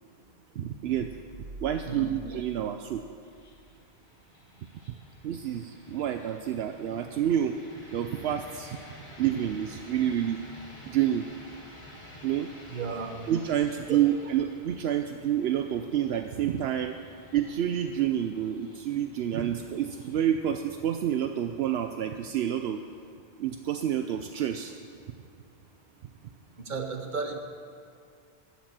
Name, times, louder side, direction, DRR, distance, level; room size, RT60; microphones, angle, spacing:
voice 1, 0.6-1.1 1.6-3.0 5.2-7.6 7.9-8.8 9.2-10.4 10.9-11.3 12.2-12.5 13.3-17.0 17.3-22.8 23.4-24.7, right 10 dB, 75° right, 7 dB, 0.8 m, -28 dB
sound 1, 0.9-3.8, right 2 dB, 15° right, 0.6 m, -47 dB
sound 2, 3.2-22.2, left 1 dB, 30° left, 2.0 m, -51 dB
voice 2, 12.7-13.1 13.9-14.0 26.6-27.4, right 4 dB, 50° right, 5 dB, 1.2 m, -33 dB
13.5 x 7.3 x 8.7 m, 2.2 s
omnidirectional pair, 1.1 m